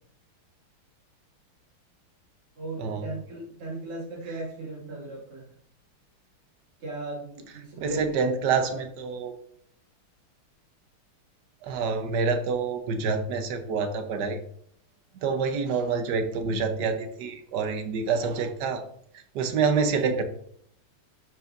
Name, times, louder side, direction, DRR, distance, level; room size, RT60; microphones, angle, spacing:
voice 1, 2.6-5.5 6.8-8.0, right 2 dB, 90° right, -4 dB, 3.1 m, -37 dB
voice 2, 7.8-9.3 11.6-14.4 15.2-18.8 19.1-20.2, right 5 dB, 60° right, 7 dB, 1.2 m, -27 dB
12.0 x 4.8 x 2.6 m, 0.65 s
omnidirectional pair, 2.4 m